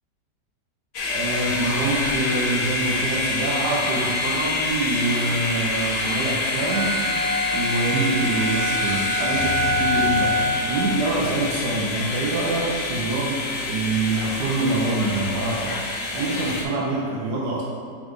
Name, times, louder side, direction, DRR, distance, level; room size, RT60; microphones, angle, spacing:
sound 1, 0.9-16.6, left 3 dB, 60° left, 0.7 m, -27 dB
voice 1, 1.0-7.0 7.5-17.6, right 2 dB, 70° right, -4 dB, 1.3 m, -25 dB
sound 2, 6.6-10.9, equal, 40° right, 1.9 m, -26 dB
sound 3, 9.4-12.5, left 1 dB, 75° left, 1.2 m, -36 dB
7.1 x 3.9 x 3.6 m, 2.3 s
omnidirectional pair, 1.9 m